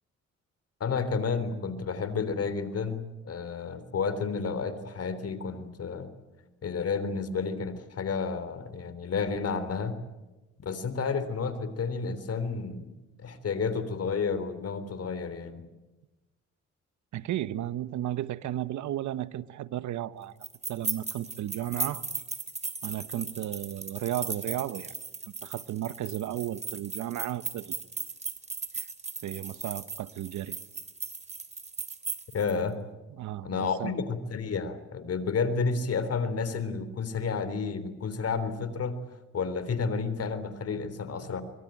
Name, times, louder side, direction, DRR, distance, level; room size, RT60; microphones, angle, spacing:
voice 1, 0.8-6.1 6.6-10.0 10.6-12.9 13.2-15.7 32.3-32.8 33.4-39.0 39.3-41.4, left 5 dB, 55° left, 3.7 m, -31 dB
voice 2, 17.1-20.4 20.7-22.0 22.8-24.9 25.4-27.8 28.7-28.9 29.2-30.6 33.2-33.9, right 12 dB, 75° right, 1.1 m, -34 dB
sound 1, 20.4-32.5, right 4 dB, 25° right, 3.1 m, -37 dB
24.5 x 23.5 x 9.0 m
cardioid pair, 75°, 29 cm